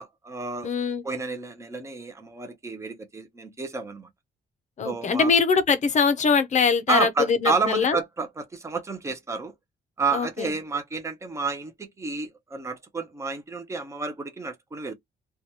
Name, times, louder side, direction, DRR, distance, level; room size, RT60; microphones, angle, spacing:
voice 1, 0.0-0.7 1.0-4.1 4.8-5.3 6.9-9.5 10.0-14.9, right 4 dB, 15° right, 0.6 m, -30 dB
voice 2, 0.6-1.0 4.8-8.0 10.1-10.5, left 5 dB, 40° left, 0.5 m, -22 dB
2.7 x 2.3 x 2.8 m
cardioid pair, 150°, 19 cm